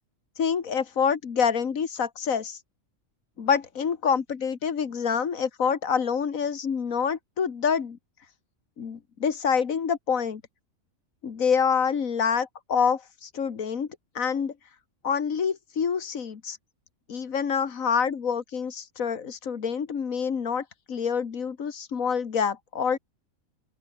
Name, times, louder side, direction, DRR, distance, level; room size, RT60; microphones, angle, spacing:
voice 1, 0.4-2.6 3.4-8.0 8.8-10.4 11.2-13.9 14.2-14.5 15.0-16.6 17.1-23.0, left 6 dB, 85° left, 2.0 m, -27 dB
open air
omnidirectional pair, 1.4 m